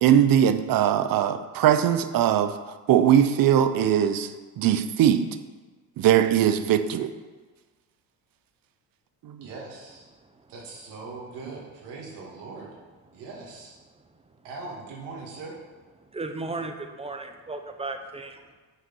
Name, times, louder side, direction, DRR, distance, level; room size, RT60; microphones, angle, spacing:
voice 1, 0.0-2.5 2.9-4.3 4.6-5.2 6.0-7.1 9.2-9.5, right 10 dB, 55° right, 10 dB, 0.7 m, -20 dB
voice 2, 9.4-10.1 10.5-12.7 13.1-13.8 14.4-15.6, right 3 dB, 80° right, -3 dB, 2.3 m, -40 dB
voice 3, 10.1-10.5 13.1-13.2 13.9-14.4 16.0-18.6, right 3 dB, 15° right, 6 dB, 0.9 m, -37 dB
6.3 x 5.0 x 6.2 m, 1.3 s
supercardioid pair, 80°, 41 cm